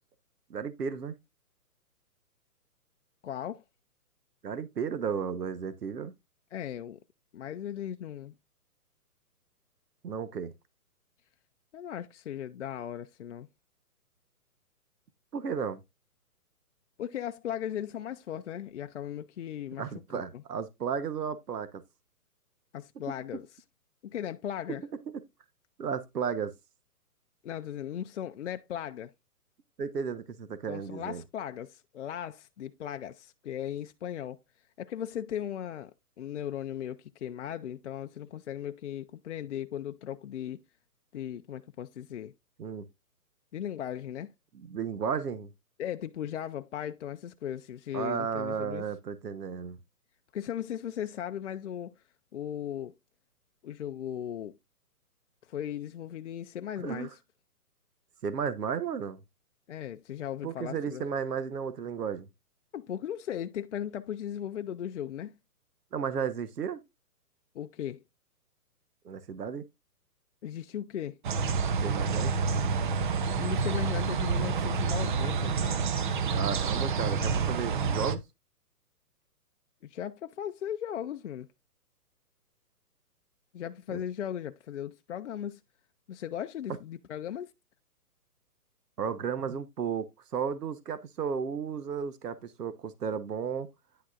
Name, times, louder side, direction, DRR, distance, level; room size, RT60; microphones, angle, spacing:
voice 1, 0.5-1.1 4.4-6.1 10.0-10.5 15.3-15.8 19.8-21.8 25.1-25.2 25.8-26.5 29.8-31.2 42.6-42.8 44.5-45.5 47.9-49.8 56.8-57.1 58.2-59.2 60.4-62.3 65.9-66.8 69.0-69.6 71.8-72.3 76.3-78.2 83.9-84.0 89.0-93.7, right 6 dB, 85° right, 1.2 m, -33 dB
voice 2, 3.2-3.6 6.5-7.0 7.3-8.3 11.7-13.5 17.0-19.8 20.1-20.4 22.7-23.6 24.0-24.8 27.4-29.1 30.7-34.4 34.8-40.6 41.1-42.3 43.5-44.3 45.8-48.9 50.3-51.9 52.3-52.9 53.6-54.6 55.4-57.2 59.7-61.0 62.7-65.4 67.5-68.0 70.4-71.2 73.4-75.9 79.8-81.5 83.5-85.6 86.1-87.5, left 10 dB, 50° left, 0.5 m, -37 dB
sound 1, 71.2-78.2, right 5 dB, 35° right, 0.6 m, -28 dB
10.0 x 6.1 x 2.5 m
hypercardioid pair, 145°, 46 cm